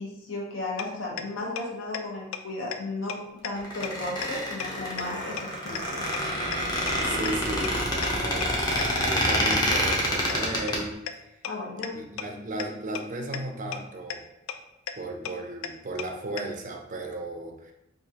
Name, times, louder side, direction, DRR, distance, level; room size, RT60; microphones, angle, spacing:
voice 1, 0.0-6.0 11.4-11.9, left 2 dB, 70° left, -2 dB, 1.1 m, -35 dB
sound 1, 0.8-0.9 1.2-1.3 1.6-1.7 1.9-2.0 2.3-2.4 2.7-2.8 3.1-3.2 3.4-3.5 3.8-3.9 4.2-4.3 4.6-4.7 5.0-5.1 5.4-5.5 5.7-5.8 6.1-6.2 6.5-6.6 6.9-7.0 7.3-7.4 7.6-7.7 8.0-8.1 8.4-8.5 8.8-8.9 9.2-9.3 9.5-9.6 9.9-10.0 10.3-10.4 10.7-10.8 11.1-11.2 11.4-11.5 11.8-11.9 12.2-12.3 12.6-12.7 13.0-13.1 13.3-13.4 13.7-13.8 14.1-14.2 14.5-14.6 14.9-15.0 15.3-15.4 15.6-15.7 16.0-16.1 16.4-16.5, left 9 dB, 90° left, 0.3 m, -32 dB
Squeak, 3.6-10.8, equal, 20° left, 0.7 m, -27 dB
voice 2, 7.0-8.6 9.0-11.0 11.9-14.2 15.0-17.7, right 2 dB, 40° right, 3 dB, 0.5 m, -35 dB
4.8 x 2.4 x 2.8 m, 0.87 s
head